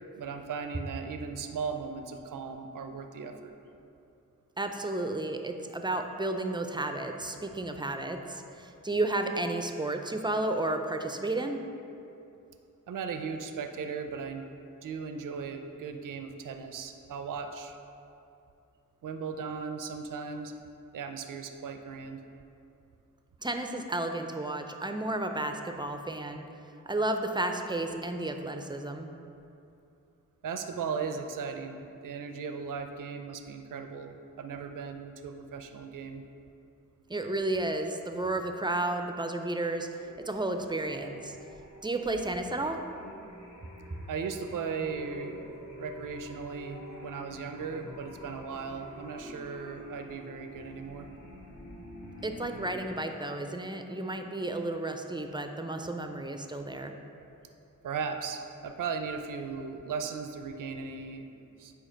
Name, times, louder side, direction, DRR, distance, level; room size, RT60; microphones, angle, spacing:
voice 1, 0.1-3.5 12.9-14.4 14.8-17.7 19.0-20.5 20.9-22.2 30.4-36.2 44.1-45.5 45.8-51.1 57.8-61.7, right 5 dB, 70° right, 6 dB, 0.5 m, -37 dB
voice 2, 4.6-11.6 23.4-26.4 26.9-29.1 37.1-39.9 40.3-41.4 41.8-42.8 52.2-56.9, right 2 dB, 15° right, 5 dB, 0.4 m, -32 dB
sound 1, 39.5-52.8, left 1 dB, 60° left, 1.3 m, -48 dB
8.3 x 2.8 x 5.1 m, 2.7 s
wide cardioid pair, 75°, 33 cm